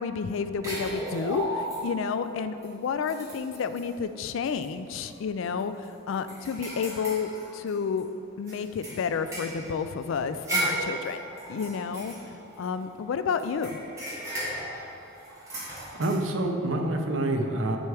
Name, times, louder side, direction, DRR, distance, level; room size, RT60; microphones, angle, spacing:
voice 1, 0.0-8.1 8.4-11.2 11.5-12.1 12.6-13.8, left 6 dB, 70° left, 11 dB, 0.3 m, -30 dB
sound 1, 0.6-2.1 2.6-2.7 3.0-3.9 4.5-4.7 5.0-5.1 5.6-8.0 8.5-12.9 13.4-16.2, right 1 dB, 15° right, 1.6 m, -35 dB
voice 2, 15.9-17.8, right 1 dB, 70° right, 3 dB, 0.7 m, -27 dB
9.9 x 4.5 x 3.4 m, 2.8 s
head